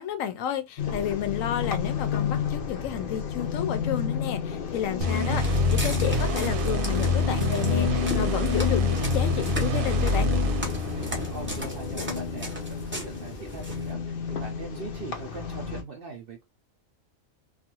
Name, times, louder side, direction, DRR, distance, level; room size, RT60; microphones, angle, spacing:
voice 1, 0.0-10.3, left 10 dB, 75° left, 0.9 m, -31 dB
sound 1, 0.8-15.8, left 7 dB, 60° left, 0.6 m, -31 dB
sound 2, 5.0-11.5, left 2 dB, 90° right, 1.0 m, -26 dB
Walk footsteps, 5.2-13.9, right 1 dB, 15° right, 0.5 m, -39 dB
voice 2, 11.0-16.4, right 3 dB, 60° right, 0.6 m, -41 dB
2.4 x 2.4 x 2.8 m
omnidirectional pair, 1.4 m